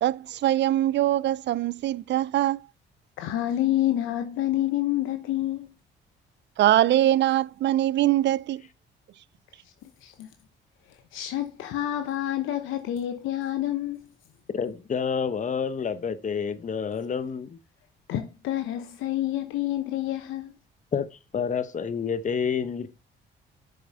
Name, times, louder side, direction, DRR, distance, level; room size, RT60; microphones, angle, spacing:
voice 1, 0.0-2.6 6.6-8.6, right 13 dB, 65° right, 0.5 m, -22 dB
voice 2, 3.2-5.7 9.8-10.3 11.1-14.1 18.1-20.5, left 13 dB, 90° left, 1.0 m, -28 dB
voice 3, 14.5-17.6 20.9-21.1 21.3-22.9, left 6 dB, 40° left, 1.0 m, -28 dB
7.7 x 6.8 x 4.1 m
cardioid pair, 90°, 20 cm